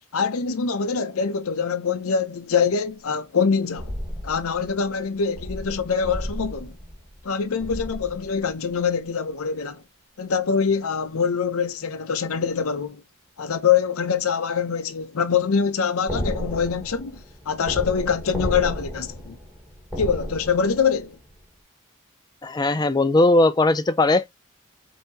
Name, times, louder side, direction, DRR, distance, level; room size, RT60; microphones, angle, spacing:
voice 1, 0.1-3.9 4.2-6.7 7.2-9.8 10.2-13.0 13.4-19.4 20.0-21.2, left 6 dB, 85° left, 0.6 m, -24 dB
sound 1, 3.8-8.8 16.1-21.0 21.3-21.4, equal, ahead, 1.3 m, -33 dB
voice 2, 22.4-24.4, left 2 dB, 20° left, 0.3 m, -19 dB
5.4 x 2.8 x 2.7 m
head